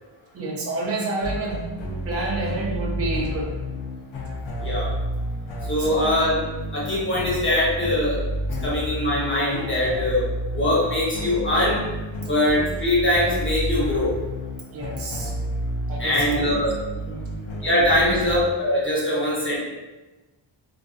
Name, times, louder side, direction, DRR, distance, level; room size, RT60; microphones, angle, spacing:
voice 1, 0.3-1.8 2.0-3.5 5.8-6.1 6.8-6.9 11.2-11.3 14.7-15.3 15.9-16.6 17.0-17.5 17.9-18.2 19.1-19.2, right 2 dB, 35° right, -2 dB, 0.5 m, -29 dB
sound 1, 1.2-18.4, equal, 75° left, 0.6 m, -30 dB
voice 2, 5.7-6.4 6.7-8.2 8.6-10.2 10.5-11.8 12.2-14.1 16.0-16.7 17.6-19.6, left 1 dB, 25° left, -7 dB, 0.8 m, -22 dB
2.4 x 2.4 x 2.4 m, 1.1 s
wide cardioid pair, 130°, 45 cm